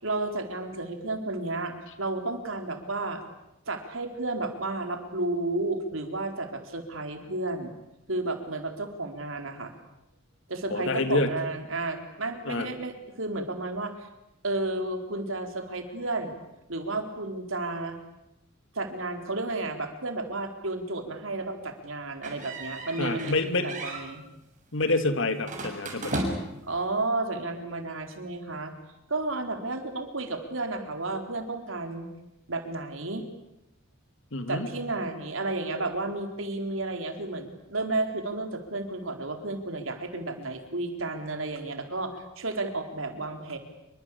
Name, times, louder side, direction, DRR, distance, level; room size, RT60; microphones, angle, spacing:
voice 1, 0.0-3.2 3.7-7.8 8.1-9.7 10.5-14.1 14.4-16.4 16.7-18.0 18.7-23.3 23.6-24.3 26.6-28.7 29.1-32.1 32.5-33.3 34.5-43.6, right 2 dB, 70° right, 5 dB, 4.3 m, -32 dB
voice 2, 10.7-11.3 12.4-12.7 23.0-23.7 24.7-26.3 34.3-34.7, left 2 dB, 65° left, 9 dB, 2.8 m, -27 dB
sound 1, 22.2-23.4 23.7-24.1 25.4-26.6, right 1 dB, 40° right, 7.0 m, -34 dB
27.5 x 24.5 x 8.7 m, 0.89 s
head